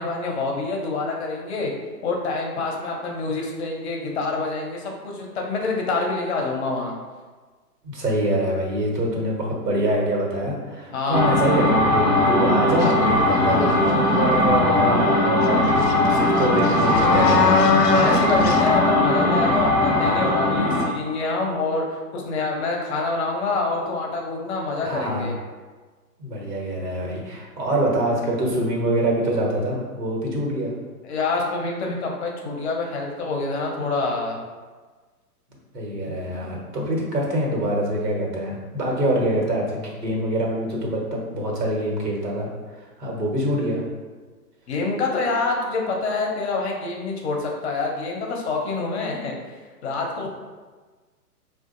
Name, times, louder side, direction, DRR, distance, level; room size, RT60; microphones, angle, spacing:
voice 1, 0.0-1.7 2.0-6.9 10.9-11.4 15.7-16.2 17.9-25.3 31.0-34.4 36.3-36.6 44.7-49.3 49.8-50.3, left 3 dB, 45° left, 0 dB, 0.7 m, -26 dB
voice 2, 7.8-17.6 24.8-25.3 26.2-30.7 35.7-42.5 43.0-43.8, right 1 dB, 80° right, -2 dB, 1.2 m, -25 dB
sound 1, 11.1-20.9, left 1 dB, 5° left, 0.7 m, -19 dB
sound 2, 12.8-13.0 13.5-14.1 15.4-15.5 15.8-18.6, left 5 dB, 90° left, 0.5 m, -23 dB
4.4 x 2.4 x 2.5 m, 1.4 s
figure-of-eight pair, 125°, 47 cm